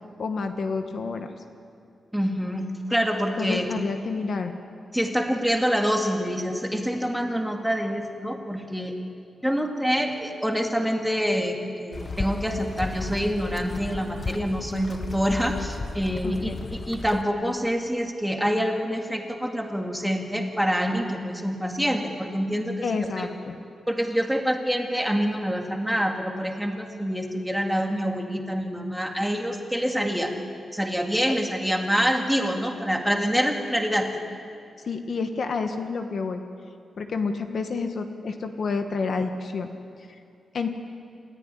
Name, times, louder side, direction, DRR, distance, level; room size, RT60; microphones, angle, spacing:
voice 1, 0.2-1.3 3.4-4.5 16.2-16.5 22.8-23.6 34.8-36.4 37.0-39.7 40.5-40.7, left 4 dB, 50° left, 6 dB, 1.3 m, -29 dB
voice 2, 2.1-3.7 4.9-9.0 9.4-16.6 16.9-23.3 23.9-30.3 30.7-34.1, equal, ahead, 2 dB, 2.0 m, -26 dB
sound 1, 11.9-17.2, left 3 dB, 25° left, 0.7 m, -34 dB
28.5 x 14.5 x 9.9 m, 2.5 s
wide cardioid pair, 170°, 0 cm